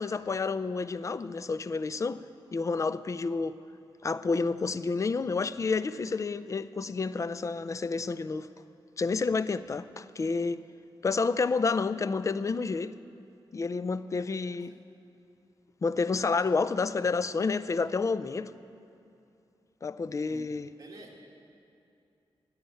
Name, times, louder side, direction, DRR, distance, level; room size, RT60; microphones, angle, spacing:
voice 1, 0.0-2.2 2.5-3.6 4.0-8.5 9.0-10.6 11.0-12.9 13.5-14.7 15.8-18.5 19.8-20.7, left 4 dB, 35° left, 0.4 m, -29 dB
voice 2, 20.8-21.2, right 2 dB, 40° right, 1.6 m, -48 dB
11.0 x 8.6 x 9.0 m
wide cardioid pair, 110°, 10 cm